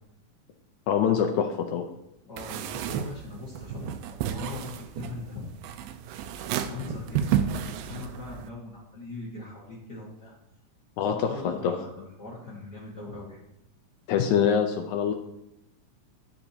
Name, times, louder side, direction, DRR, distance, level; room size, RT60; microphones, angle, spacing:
voice 1, 0.9-1.8 11.0-11.3 11.6-11.7 14.1-15.1, left 8 dB, 80° left, 4 dB, 1.8 m, -24 dB
voice 2, 2.3-5.5 6.5-10.3 11.1-13.4, left 3 dB, 45° left, -5 dB, 1.4 m, -40 dB
sound 1, 2.4-8.5, right 9 dB, 90° right, 2.3 m, -32 dB
11.5 x 6.9 x 2.8 m, 0.86 s
omnidirectional pair, 3.9 m